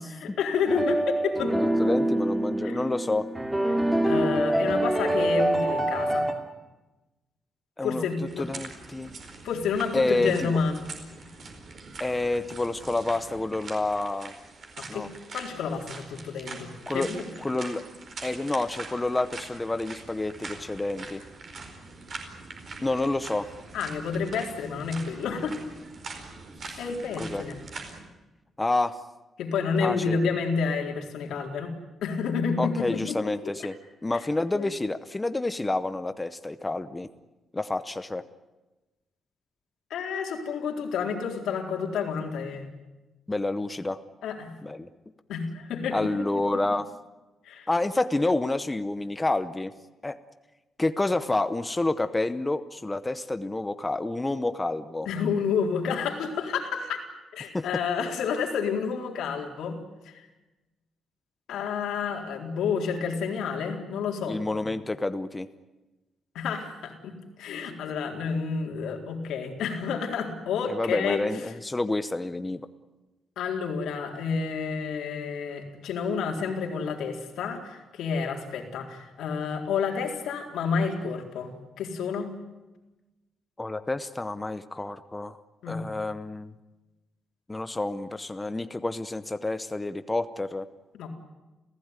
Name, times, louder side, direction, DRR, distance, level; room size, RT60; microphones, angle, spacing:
voice 1, 0.0-1.5 2.6-2.8 3.7-3.8 4.0-6.3 7.8-8.5 9.4-10.8 14.8-15.1 15.3-17.2 23.7-25.6 26.8-27.6 29.4-33.2 34.1-34.2 34.5-34.7 39.9-42.7 44.2-44.5 45.3-46.1 47.4-47.7 55.1-57.0 57.3-60.3 61.5-64.6 66.3-71.2 73.4-82.3 85.6-85.8 90.9-91.1, left 5 dB, 90° left, 2 dB, 4.1 m, -30 dB
sound 1, 0.7-6.3, right 1 dB, 10° right, 2.5 m, -25 dB
voice 2, 1.5-3.3 7.8-8.1 8.4-9.1 9.9-10.6 12.0-14.3 14.9-15.1 16.9-17.1 17.4-17.8 18.2-21.2 22.8-23.5 26.7-26.8 27.2-27.4 28.6-29.0 29.8-30.2 32.6-33.7 34.0-37.1 37.5-38.2 43.3-44.0 44.6-44.9 45.9-46.9 47.7-49.7 50.0-50.2 50.8-55.1 57.5-57.6 64.3-65.5 70.7-72.6 83.6-85.4 85.7-86.5 87.5-90.7, left 2 dB, 10° left, 11 dB, 0.8 m, -28 dB
sound 2, 8.3-28.0, right 3 dB, 40° right, 4.5 m, -43 dB
29.5 x 16.0 x 9.7 m, 1.1 s
cardioid pair, 170°, 0 cm